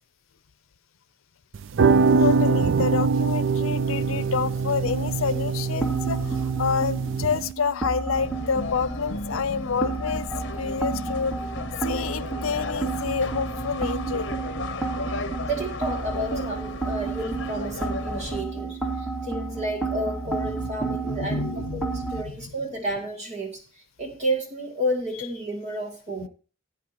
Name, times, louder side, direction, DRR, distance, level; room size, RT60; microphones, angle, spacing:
sound 1, 1.5-7.5, right 4 dB, 65° right, 0.4 m, -23 dB
voice 1, 2.2-10.3 10.6-11.4 11.8-14.3 20.3-22.5 26.2-26.3, left 5 dB, 85° left, 18 dB, 0.6 m, -28 dB
sound 2, 4.8-22.2, right 4 dB, ahead, 2.2 m, -32 dB
sound 3, 8.1-18.4, left 3 dB, 60° left, 0.9 m, -35 dB
voice 2, 15.4-21.4 21.7-23.6 24.0-26.3, right 1 dB, 35° right, 3 dB, 2.6 m, -31 dB
16.0 x 9.1 x 3.0 m, 0.35 s
head